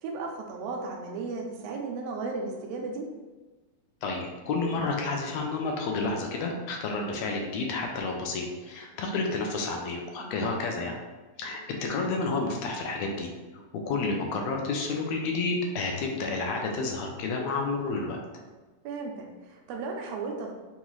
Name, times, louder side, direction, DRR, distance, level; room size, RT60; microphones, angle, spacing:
voice 1, 0.0-3.1 10.2-10.7 18.8-20.5, right 3 dB, 80° right, 1 dB, 1.5 m, -35 dB
voice 2, 4.0-11.0 11.4-13.3 13.5-18.2, left 3 dB, 75° left, 1 dB, 1.7 m, -30 dB
5.4 x 2.4 x 3.0 m, 1.2 s
omnidirectional pair, 3.4 m